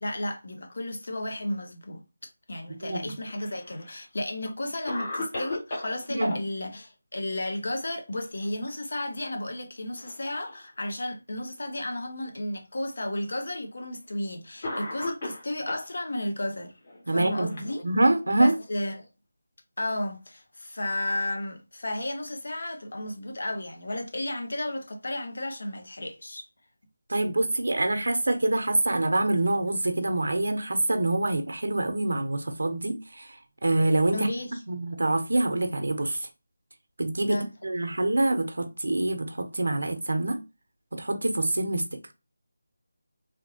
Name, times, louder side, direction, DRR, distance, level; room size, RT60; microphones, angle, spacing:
voice 1, 0.0-16.8 17.1-17.8 18.4-19.1 19.8-26.4 34.1-34.6 37.3-37.5, left 1 dB, 55° left, 0.8 m, -33 dB
Cough, 3.0-3.9 4.4-4.5 4.9-6.4 8.3-8.7 9.0-9.1 9.9-10.6 11.4-11.5 12.6-12.7 13.8-14.0 14.6-15.9 16.8-18.3, left 1 dB, 25° left, 1.0 m, -36 dB
voice 2, 17.1-17.5 17.8-18.5 27.1-33.3 33.6-34.3 34.7-36.2 37.0-37.4 37.6-40.4 40.9-41.8, right 2 dB, 75° right, 0.8 m, -25 dB
3.5 x 2.8 x 2.8 m
figure-of-eight pair, 180°, 0 cm